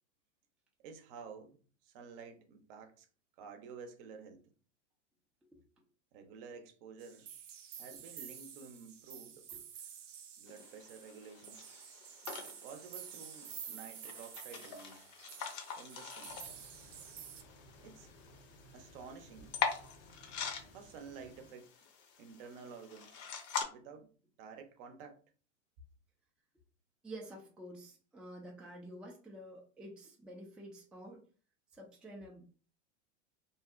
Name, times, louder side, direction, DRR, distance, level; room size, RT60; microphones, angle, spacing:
voice 1, 0.8-1.6 1.8-3.1 3.4-4.5 6.1-7.3 7.8-9.5 10.4-11.6 12.6-15.1 15.8-16.4 17.8-18.1 18.7-19.5 20.7-21.7 22.2-23.2 23.7-24.1 24.4-25.2, right 5 dB, 50° right, 0.7 m, -51 dB
sound 1, 7.0-17.4, right 8 dB, 90° right, 0.5 m, -50 dB
sound 2, 10.5-23.6, left 6 dB, 45° left, 0.7 m, -44 dB
sound 3, 16.2-21.5, equal, 70° left, 0.9 m, -59 dB
voice 2, 27.0-31.2 31.7-32.5, right 1 dB, 5° right, 0.4 m, -49 dB
2.7 x 2.0 x 2.4 m
hypercardioid pair, 100°, 36 cm